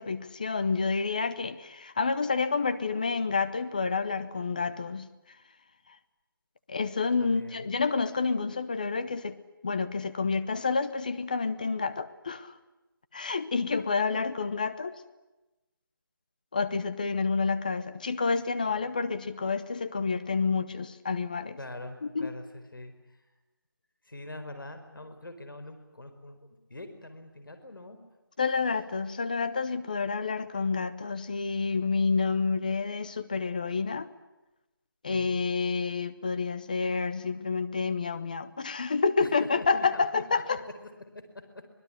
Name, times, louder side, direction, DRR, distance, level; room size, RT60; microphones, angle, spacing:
voice 1, 0.0-5.1 6.7-9.4 9.6-12.5 13.1-15.0 16.5-21.6 22.1-22.3 28.4-34.1 35.0-40.6, left 4 dB, 20° left, 11 dB, 0.9 m, -29 dB
voice 2, 7.2-7.7 18.6-18.9 21.6-23.2 24.0-26.4 26.7-28.0 35.1-35.4 39.2-40.6 41.1-41.2, left 2 dB, 65° left, 8 dB, 4.7 m, -43 dB
25.5 x 20.0 x 9.9 m, 1.0 s
figure-of-eight pair, 175°, 12 cm